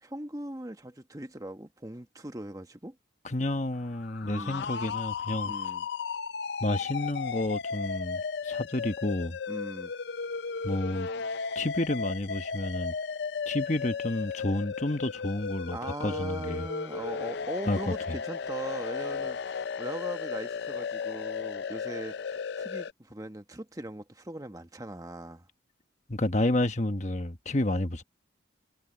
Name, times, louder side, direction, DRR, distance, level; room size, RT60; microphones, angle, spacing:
voice 1, 0.0-3.0 4.2-4.7 5.4-5.9 9.5-9.9 15.7-25.5, right 1 dB, 20° right, 1.2 m, -40 dB
voice 2, 3.2-5.5 6.6-9.4 10.6-11.1 11.5-12.9 13.5-16.7 17.7-17.9 26.1-28.0, left 1 dB, 35° left, 1.1 m, -30 dB
sound 1, 3.9-22.9, left 5 dB, 60° left, 0.4 m, -35 dB
head